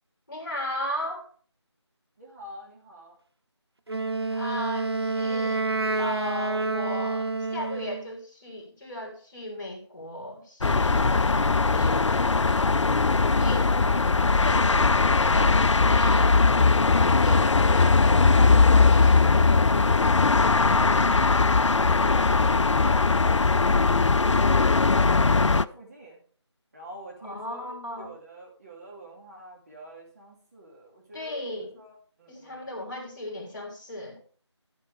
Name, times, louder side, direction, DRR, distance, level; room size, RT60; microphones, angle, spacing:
voice 1, 0.3-1.3 4.3-5.6 6.0-12.5 13.4-13.8 14.4-14.6 15.2-19.9 27.2-28.1 31.1-31.7 32.3-34.2, left 1 dB, 45° left, 1 dB, 3.2 m, -36 dB
voice 2, 2.2-3.2 12.3-12.6 13.4-15.1 21.0-23.6 24.1-26.2 26.7-32.7, right 1 dB, 35° right, -3 dB, 2.8 m, -45 dB
Wind instrument woodwind instrument, 3.9-8.1, right 3 dB, 60° right, 0.8 m, -28 dB
sound 1, 10.6-25.6, left 4 dB, 85° left, 0.4 m, -20 dB
13.0 x 8.2 x 3.4 m, 0.43 s
figure-of-eight pair, 165°, 15 cm